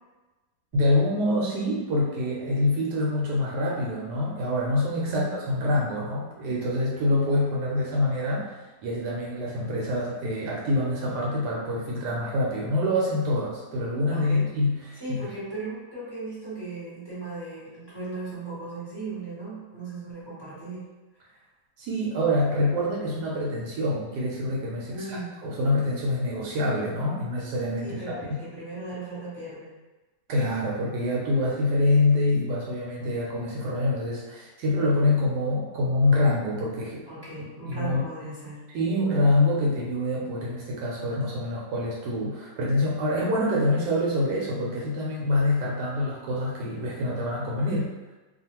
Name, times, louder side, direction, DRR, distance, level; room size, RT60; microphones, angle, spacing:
voice 1, 0.7-15.3 21.8-28.2 30.3-37.0 37.6-38.0 38.7-48.1, left 1 dB, 80° right, -4 dB, 1.2 m, -26 dB
voice 2, 5.1-5.7 14.1-14.5 14.9-20.8 21.2-21.4 24.9-25.3 27.8-29.7 37.1-38.6 38.9-39.1, right 3 dB, 25° right, -11 dB, 0.6 m, -37 dB
2.5 x 2.4 x 2.9 m, 1.2 s
omnidirectional pair, 1.8 m